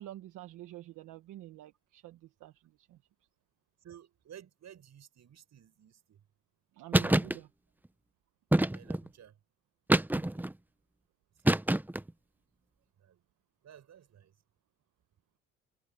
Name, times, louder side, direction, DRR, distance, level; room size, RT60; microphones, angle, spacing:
voice 1, 0.0-2.5 2.8-3.0 6.7-7.5 10.1-10.3, right 14 dB, 85° right, 1.3 m, -48 dB
voice 2, 3.8-6.2 8.7-9.4 11.3-11.4 13.0-13.2 13.6-14.3, right 10 dB, 65° right, 7.5 m, -55 dB
sound 1, 6.9-7.4 8.5-9.1 9.9-10.5 11.4-12.1, right 1 dB, 5° right, 0.8 m, -26 dB
cardioid pair, 90°, 30 cm